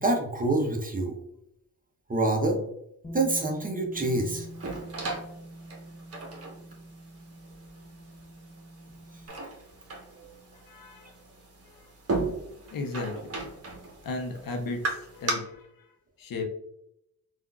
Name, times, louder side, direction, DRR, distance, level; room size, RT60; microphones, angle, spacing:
voice 1, 0.0-1.1 2.1-2.6 3.1-4.5, right 2 dB, 20° right, 2 dB, 0.8 m, -26 dB
Bass guitar, 3.0-9.3, right 1 dB, 15° left, 0.7 m, -45 dB
sound 1, 3.9-15.3, right 3 dB, 35° right, 1.1 m, -37 dB
voice 2, 10.5-11.2 11.6-11.9 12.7-13.3 14.0-16.4, left 3 dB, 55° left, 4 dB, 0.7 m, -36 dB
3.5 x 2.5 x 2.3 m, 0.78 s
supercardioid pair, 55°, 41 cm